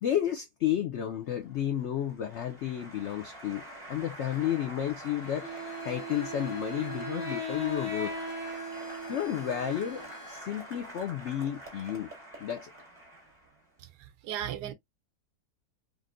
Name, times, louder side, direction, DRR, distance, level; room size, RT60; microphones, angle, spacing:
voice 1, 0.0-5.5 5.8-8.1 9.1-12.1 12.4-12.7, left 10 dB, 85° left, 0.6 m, -32 dB
Applause, 1.2-13.7, right 1 dB, 10° right, 1.6 m, -46 dB
Bowed string instrument, 5.2-10.5, left 2 dB, 65° left, 1.7 m, -51 dB
Wind instrument woodwind instrument, 5.4-10.2, equal, 10° left, 1.4 m, -39 dB
voice 2, 13.8-14.7, right 11 dB, 85° right, 1.2 m, -37 dB
3.6 x 2.6 x 2.4 m
omnidirectional pair, 1.8 m